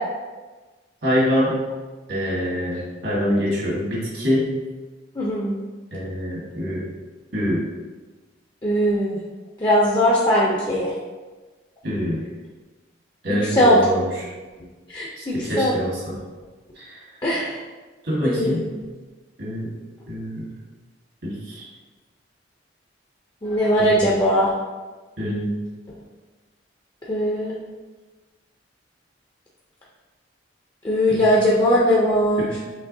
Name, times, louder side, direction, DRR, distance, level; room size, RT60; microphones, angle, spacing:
voice 1, 1.0-1.7 2.1-4.6 5.9-6.8 7.3-7.6 11.8-12.2 13.2-14.3 15.2-16.2 16.8-16.9 18.0-18.7 19.4-19.7 20.1-20.5 21.2-21.7 23.8-24.2 25.2-25.5 31.1-31.2 32.4-32.6, equal, 70° right, -5 dB, 1.5 m, -25 dB
voice 2, 5.2-5.6 8.6-9.2 9.6-10.9 13.3-13.8 14.9-15.7 17.2-17.5 18.2-18.7 23.4-24.5 27.1-27.5 30.8-32.5, equal, 25° left, -5 dB, 0.5 m, -19 dB
5.9 x 3.3 x 2.6 m, 1.3 s
head